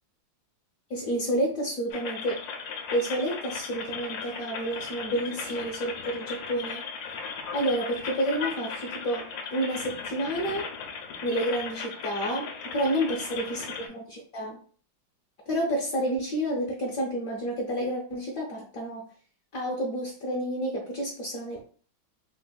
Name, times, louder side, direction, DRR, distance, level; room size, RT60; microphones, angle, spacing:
voice 1, 0.9-2.5 2.9-6.9 7.5-10.7 11.2-13.6 13.9-14.6 15.5-19.1 19.5-21.6, equal, 60° left, -2 dB, 1.0 m, -30 dB
sound 1, 1.9-13.9, left 5 dB, 75° left, 1.2 m, -37 dB
3.3 x 3.3 x 2.2 m, 0.42 s
omnidirectional pair, 2.1 m